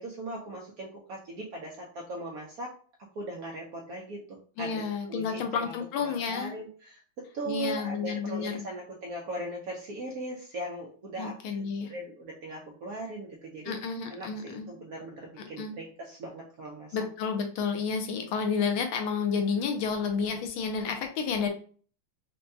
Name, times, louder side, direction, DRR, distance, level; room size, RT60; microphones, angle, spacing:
voice 1, 0.0-2.7 3.2-4.8 5.1-13.8 14.1-17.0, right 1 dB, 70° right, -1 dB, 0.9 m, -39 dB
voice 2, 4.6-6.5 7.5-8.6 11.2-11.9 13.6-14.7 15.4-15.7 16.9-21.5, left 5 dB, 85° left, 5 dB, 1.5 m, -31 dB
4.4 x 2.2 x 2.6 m, 0.42 s
omnidirectional pair, 2.2 m